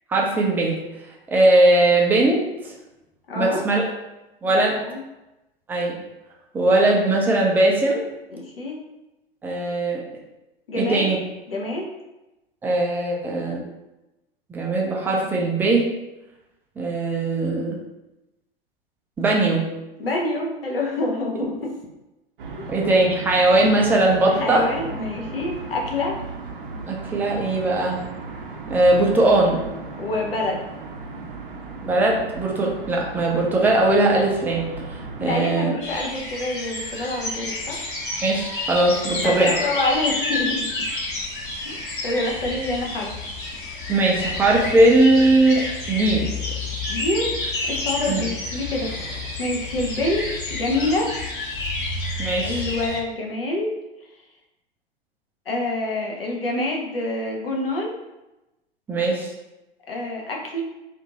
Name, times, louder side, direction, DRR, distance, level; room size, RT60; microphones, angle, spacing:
voice 1, 0.1-0.8 1.3-2.7 3.4-3.8 4.4-4.8 5.7-6.0 6.5-8.0 9.4-10.0 10.8-11.2 12.6-13.6 14.5-15.8 16.8-17.8 19.2-19.6 21.4-21.5 22.7-24.6 26.9-28.0 28.7-29.6 31.8-35.7 38.2-39.5 43.9-46.3 48.1-48.2 52.2-52.6 58.9-59.3, right 2 dB, 5° right, -1 dB, 0.3 m, -20 dB
voice 2, 3.3-3.7 4.4-5.0 8.3-8.8 10.7-11.1 11.5-11.9 20.0-21.7 24.4-26.2 30.0-30.7 35.2-37.8 39.2-40.7 41.7-43.1 46.9-47.4 47.7-51.1 52.4-53.7 55.5-57.9 59.9-60.6, left 2 dB, 75° left, 0 dB, 0.7 m, -27 dB
sound 1, 22.4-35.4, right 3 dB, 60° right, 0.6 m, -36 dB
sound 2, 35.8-53.0, left 2 dB, 60° left, 0.9 m, -29 dB
2.5 x 2.5 x 2.9 m, 0.98 s
figure-of-eight pair, 90°, 29 cm